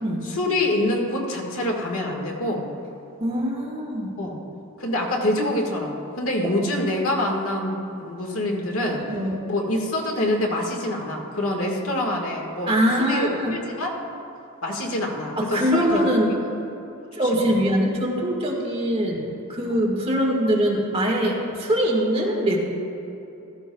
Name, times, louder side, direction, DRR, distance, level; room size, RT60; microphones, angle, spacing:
voice 1, 0.2-2.7 4.2-4.4 4.8-9.0 9.5-13.9 14.6-16.0 17.3-17.5, left 1 dB, 65° left, 0 dB, 1.6 m, -26 dB
voice 2, 3.2-4.2 8.9-9.4 12.7-13.5 15.4-16.3 17.1-22.6, equal, 25° right, -2 dB, 1.6 m, -23 dB
15.5 x 14.0 x 2.3 m, 2.9 s
head